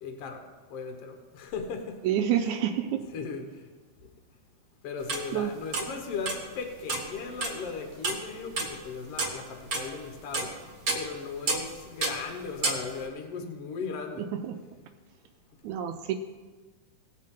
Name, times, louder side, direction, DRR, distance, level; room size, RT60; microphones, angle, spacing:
voice 1, 0.0-2.0 2.4-2.6 3.1-3.7 4.0-4.1 4.8-10.6 10.9-14.3, left 5 dB, 60° left, 4 dB, 1.8 m, -37 dB
voice 2, 2.0-3.1 5.3-5.5 14.2-14.6 15.6-16.1, right 10 dB, 80° right, 6 dB, 1.9 m, -28 dB
sound 1, 5.0-5.5 5.7-6.4 6.9-7.7 8.0-8.7 9.1-10.5 10.9-11.7 12.0-12.2 12.6-12.8, right 3 dB, 40° right, 1.4 m, -30 dB
18.5 x 7.5 x 3.7 m, 1.3 s
omnidirectional pair, 3.5 m